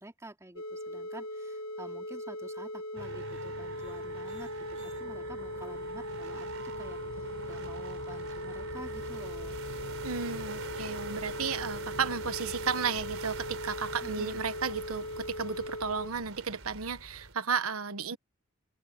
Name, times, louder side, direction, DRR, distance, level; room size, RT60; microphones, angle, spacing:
voice 1, 0.0-6.5 6.8-9.6 14.0-14.4, right 1 dB, 15° right, 3.3 m, -49 dB
sound 1, 0.6-16.1, left 1 dB, 80° left, 1.4 m, -39 dB
sound 2, 3.0-17.3, right 3 dB, 70° right, 5.0 m, -44 dB
voice 2, 10.0-18.2, right 6 dB, 90° right, 1.3 m, -33 dB
head